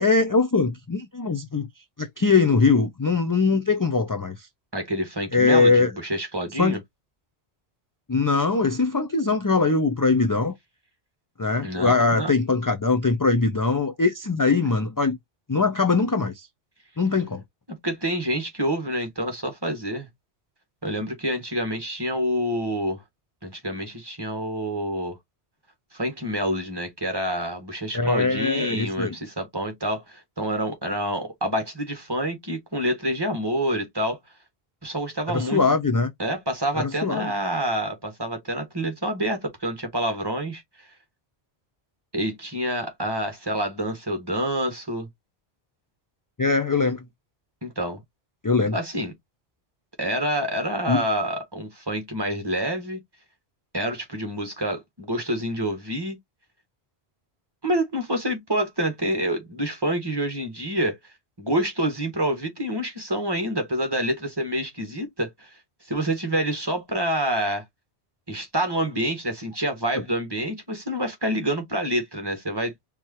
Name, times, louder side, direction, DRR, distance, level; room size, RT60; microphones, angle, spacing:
voice 1, 0.0-1.7 2.0-4.5 5.3-5.9 6.6-6.8 8.1-10.5 11.4-15.2 15.5-16.5 17.0-17.4 27.9-29.2 35.3-36.1 36.8-37.3 46.4-47.0 48.4-48.8 50.9-51.0, left 4 dB, 25° left, 0.4 m, -21 dB
voice 2, 4.7-6.8 11.6-12.3 17.8-20.1 20.8-23.0 23.4-25.2 25.9-34.2 34.8-35.6 36.2-40.9 42.1-45.1 47.6-48.0 48.7-49.1 50.0-53.0 53.7-56.2 57.6-61.0 61.4-65.5 65.9-67.6 68.3-72.7, right 1 dB, 20° right, 1.6 m, -27 dB
4.6 x 3.7 x 3.0 m
omnidirectional pair, 1.1 m